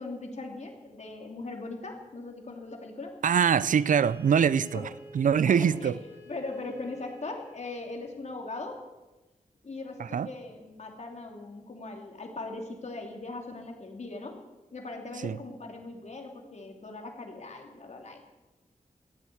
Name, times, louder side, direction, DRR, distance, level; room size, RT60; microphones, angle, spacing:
voice 1, 0.0-3.1 4.7-4.9 5.5-5.9 6.3-8.8 9.6-14.4 14.7-18.2, left 3 dB, 60° left, 2.8 m, -40 dB
voice 2, 3.2-4.9 5.1-6.0 10.0-10.3 15.2-15.4, right 7 dB, 75° right, 0.4 m, -23 dB
Bowed string instrument, 3.5-7.7, equal, 20° right, 3.6 m, -50 dB
14.0 x 9.0 x 8.5 m
wide cardioid pair, 80°, 13 cm